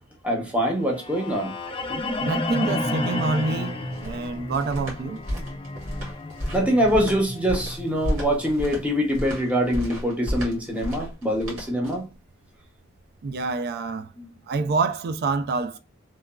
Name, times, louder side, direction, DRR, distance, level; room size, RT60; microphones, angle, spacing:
voice 1, 0.2-1.5 6.5-12.0 14.2-14.3, equal, 5° right, 0.7 m, -24 dB
sound 1, 0.9-9.0, left 2 dB, 25° left, 0.4 m, -32 dB
voice 2, 2.2-3.8 4.0-5.2 13.2-14.1 14.5-15.8, right 4 dB, 50° right, 0.3 m, -26 dB
sound 2, 3.5-12.2, equal, 80° right, 1.4 m, -33 dB
3.0 x 2.3 x 2.2 m
head